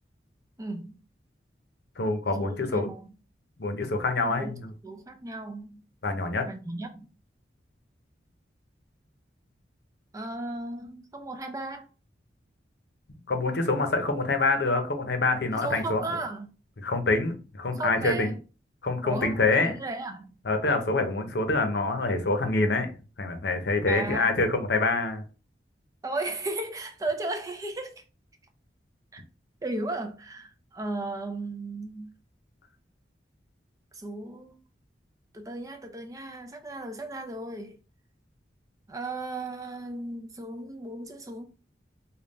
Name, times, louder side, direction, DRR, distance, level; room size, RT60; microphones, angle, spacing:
voice 1, 0.6-0.9 2.4-3.1 4.4-4.6 4.8-5.8 6.4-7.1 10.1-11.9 15.5-16.5 17.7-18.4 19.0-20.4 23.9-24.3 26.0-28.0 29.1-29.2 29.6-32.1 33.9-34.6 35.3-37.8 38.9-41.5, right 2 dB, 20° right, 0.4 m, -35 dB
voice 2, 2.0-2.9 3.6-4.7 6.0-6.5 13.3-16.0 16.8-18.3 18.8-19.7 20.4-25.2, left 3 dB, 65° left, 0.7 m, -26 dB
3.5 x 2.3 x 3.9 m
head